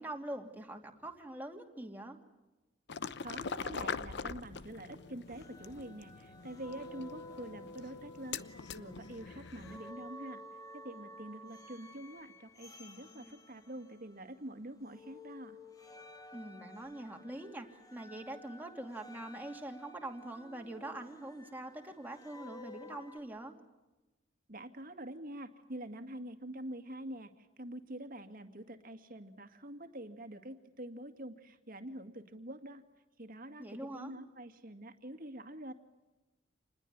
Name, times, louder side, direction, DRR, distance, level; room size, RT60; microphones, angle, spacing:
voice 1, 0.0-2.2 16.3-23.5 33.6-34.1, right 1 dB, 10° right, 2 dB, 2.7 m, -44 dB
sound 1, 2.9-9.9, left 5 dB, 60° left, 0.9 m, -43 dB
voice 2, 3.2-10.4 10.7-15.6 24.5-32.8 33.2-35.7, right 1 dB, 45° right, 8 dB, 2.2 m, -46 dB
sound 2, 4.8-14.5 14.8-23.2, left 1 dB, 20° left, 1.8 m, -53 dB
28.0 x 21.0 x 9.5 m, 1.1 s
head